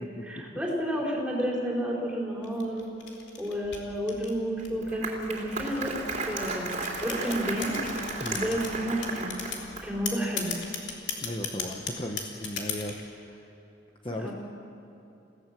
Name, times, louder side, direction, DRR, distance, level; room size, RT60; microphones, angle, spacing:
voice 1, 0.3-2.8 3.4-6.0 6.2-6.7 7.0-7.7 8.3-9.4 9.8-10.5 14.2-14.3, equal, 5° right, -3 dB, 4.6 m, -31 dB
sound 1, 2.4-4.9 5.6-8.7 9.0-9.6 10.1-13.0, left 6 dB, 60° left, 3.3 m, -35 dB
Applause, 4.6-10.1, right 3 dB, 35° right, 3.1 m, -34 dB
voice 2, 8.2-8.5 11.2-13.5 14.0-14.3, left 1 dB, 25° left, 1 dB, 1.1 m, -36 dB
29.5 x 17.0 x 7.6 m, 2.9 s
head